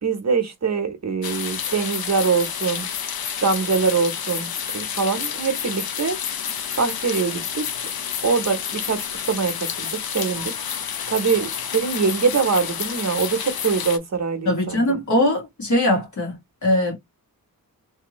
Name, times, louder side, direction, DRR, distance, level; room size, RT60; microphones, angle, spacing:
voice 1, 0.0-2.9 3.4-6.2 6.8-7.6 8.2-10.5 11.1-15.0, right 5 dB, 50° right, 1.0 m, -23 dB
sound 1, 1.2-14.0, left 8 dB, 90° left, 0.7 m, -29 dB
voice 2, 14.5-17.0, left 1 dB, 55° left, 2.0 m, -21 dB
3.4 x 2.9 x 3.0 m
wide cardioid pair, 145°, 35 cm